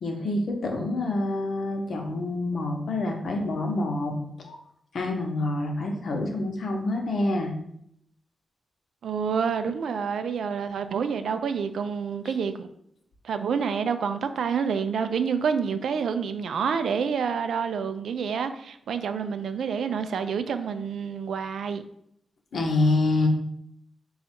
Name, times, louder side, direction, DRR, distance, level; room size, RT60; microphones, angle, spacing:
voice 1, 0.0-4.6 4.9-7.5 22.5-23.3, left 2 dB, 65° left, 0.8 m, -27 dB
voice 2, 9.0-12.7 13.2-21.8, right 6 dB, 80° right, 0.3 m, -28 dB
4.0 x 2.4 x 4.3 m
cardioid pair, 90°, 0 cm